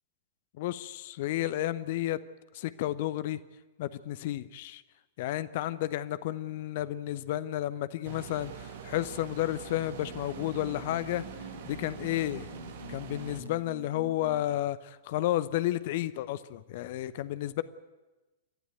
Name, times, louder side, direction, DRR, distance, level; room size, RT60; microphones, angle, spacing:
voice 1, 0.6-2.2 2.5-3.4 3.8-4.8 5.2-11.2 11.7-12.5 12.9-17.6, left 14 dB, 45° left, 16 dB, 0.8 m, -32 dB
sound 1, 8.0-13.4, right 7 dB, 50° right, 1.8 m, -44 dB
sound 2, 9.7-14.5, right 1 dB, 75° right, 3.5 m, -46 dB
28.0 x 12.5 x 9.3 m, 1.1 s
figure-of-eight pair, 100°, 0 cm